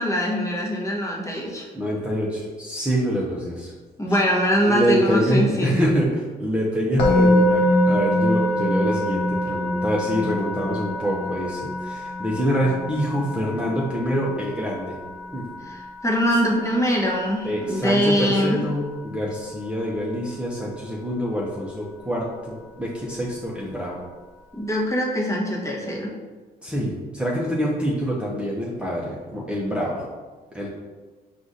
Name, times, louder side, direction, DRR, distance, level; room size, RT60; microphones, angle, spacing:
voice 1, 0.0-1.7 4.0-5.9 15.6-18.6 24.5-26.1, equal, 15° left, -3 dB, 1.1 m, -23 dB
voice 2, 1.7-3.7 4.1-4.2 4.7-15.0 15.3-15.4 17.4-24.0 26.6-30.1 30.5-30.7, equal, 5° right, -5 dB, 0.7 m, -25 dB
Musical instrument, 7.0-18.1, left 1 dB, 85° left, 0.9 m, -24 dB
4.8 x 2.5 x 4.0 m, 1.3 s
cardioid pair, 90°, 18 cm